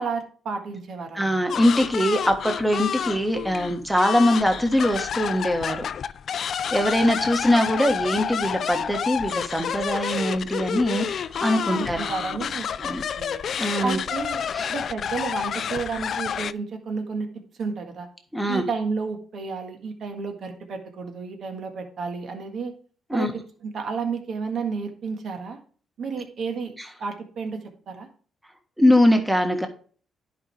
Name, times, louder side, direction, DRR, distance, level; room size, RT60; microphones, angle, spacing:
voice 1, 0.0-1.4 11.7-13.4 13.8-14.4 14.7-18.1 18.5-22.7 23.1-25.6 26.0-26.7 27.0-28.1, right 5 dB, 60° right, 5 dB, 1.7 m, -31 dB
voice 2, 1.1-5.9 6.7-12.1 12.8-13.0 13.6-14.0 14.5-14.7 18.3-18.6 23.1-23.3 26.8-26.9 28.8-29.7, equal, 5° right, 4 dB, 1.5 m, -22 dB
sound 1, 1.5-16.5, left 8 dB, 55° left, 0.3 m, -29 dB
10.5 x 5.2 x 3.4 m, 0.43 s
cardioid pair, 90°, 0 cm